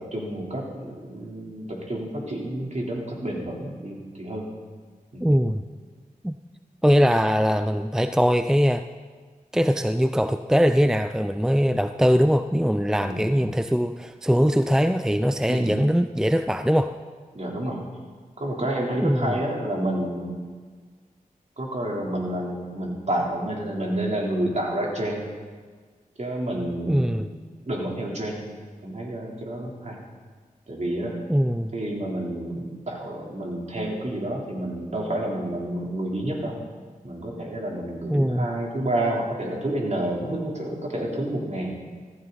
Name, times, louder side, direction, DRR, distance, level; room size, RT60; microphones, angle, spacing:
voice 1, 0.1-4.4 5.1-5.3 13.0-13.3 15.5-15.7 17.3-17.8 18.4-20.3 21.6-25.3 26.2-27.2 27.6-28.4 28.8-30.0 30.7-31.1 31.7-36.5 37.0-41.7, right 1 dB, 50° right, -2 dB, 3.5 m, -29 dB
voice 2, 5.2-5.6 6.2-6.3 6.8-8.8 9.5-16.9 19.0-19.4 26.9-27.3 31.3-31.7 38.1-38.5, equal, 5° right, 9 dB, 0.5 m, -21 dB
15.0 x 14.5 x 4.1 m, 1.5 s
cardioid pair, 45°, 15 cm